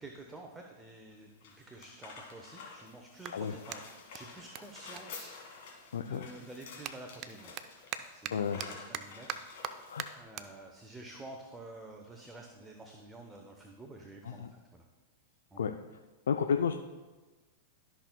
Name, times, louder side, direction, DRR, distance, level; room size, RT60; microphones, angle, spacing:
voice 1, 0.0-3.8 4.1-5.3 6.0-7.6 8.1-9.4 10.1-14.8 15.5-15.7, right 2 dB, 10° right, 2 dB, 0.9 m, -49 dB
sound 1, 1.1-10.2, left 4 dB, 55° left, 2.2 m, -50 dB
Clapping, 3.2-5.9 6.2-12.9, right 9 dB, 40° right, 0.5 m, -45 dB
voice 2, 5.9-6.3 8.3-8.6 9.9-10.1 14.2-14.5 15.6-15.7 16.3-16.7, left 7 dB, 75° left, 7 dB, 0.4 m, -31 dB
13.5 x 6.1 x 2.3 m, 1.2 s
figure-of-eight pair, 100°, 0 cm